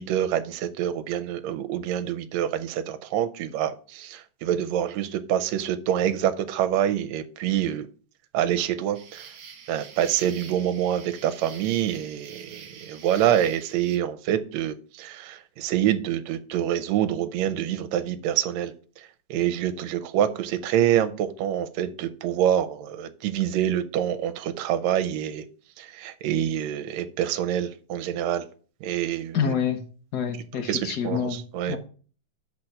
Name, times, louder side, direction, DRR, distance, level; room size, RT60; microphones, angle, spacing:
voice 1, 0.0-7.9 8.3-9.3 9.7-18.7 19.3-25.5 25.8-28.5 28.8-29.4 30.7-31.2 31.5-31.8, right 10 dB, 75° right, 10 dB, 1.9 m, -26 dB
sound 1, 8.9-14.0, right 7 dB, 55° right, 2.0 m, -45 dB
voice 2, 29.3-29.8 30.1-31.4 31.7-31.8, left 7 dB, 60° left, 5 dB, 1.0 m, -27 dB
6.0 x 4.6 x 6.5 m, 0.39 s
omnidirectional pair, 3.5 m